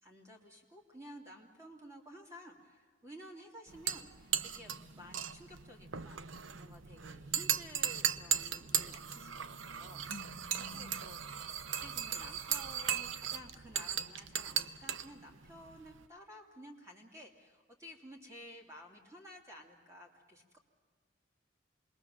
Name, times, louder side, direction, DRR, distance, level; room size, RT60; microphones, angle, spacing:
voice 1, 0.0-10.0 10.5-11.2 11.8-20.6, equal, 15° right, 1 dB, 2.8 m, -53 dB
sound 1, 3.7-16.0, right 9 dB, 90° right, 0.8 m, -37 dB
voice 2, 10.1-11.2, left 2 dB, 85° left, 8 dB, 1.3 m, -51 dB
27.5 x 21.5 x 7.2 m, 1.5 s
head